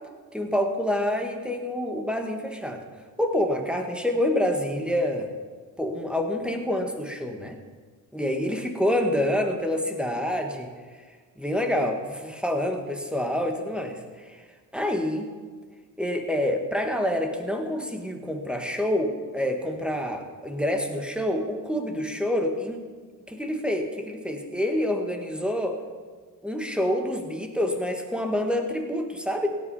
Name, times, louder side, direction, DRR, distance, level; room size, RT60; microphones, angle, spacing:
voice 1, 0.3-2.8 3.2-5.3 5.8-7.6 8.1-10.7 11.4-14.4 14.7-15.3 16.0-22.8 23.3-25.8 26.4-29.5, left 1 dB, ahead, 3 dB, 1.9 m, -27 dB
17.0 x 9.7 x 5.7 m, 1.5 s
supercardioid pair, 75°, 44 cm